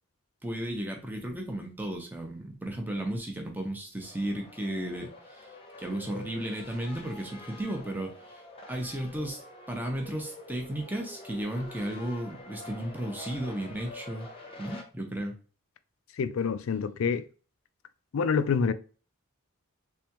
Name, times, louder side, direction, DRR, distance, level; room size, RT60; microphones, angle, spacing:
voice 1, 0.4-5.5 5.8-8.4 8.7-9.4 9.7-14.3 14.6-15.4, right 1 dB, 10° right, 0.7 m, -34 dB
sound 1, 4.0-14.8, left 2 dB, 25° left, 0.9 m, -46 dB
voice 2, 16.2-17.2 18.1-18.7, left 6 dB, 60° left, 0.4 m, -27 dB
3.4 x 3.4 x 2.9 m
head